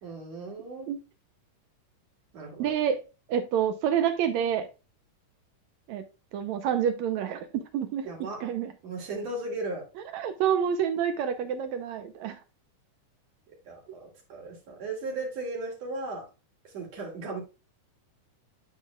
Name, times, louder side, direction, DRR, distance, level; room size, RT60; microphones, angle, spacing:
voice 1, 0.0-0.9 2.3-2.7 8.0-8.4 8.8-9.9 13.7-16.3 16.6-17.4, right 2 dB, 55° right, -1 dB, 3.7 m, -36 dB
voice 2, 2.6-3.0 3.3-4.7 5.9-6.0 6.3-8.1 8.4-8.7 10.1-12.4, right 8 dB, 75° right, 8 dB, 1.8 m, -28 dB
11.0 x 4.6 x 2.3 m, 0.30 s
omnidirectional pair, 3.7 m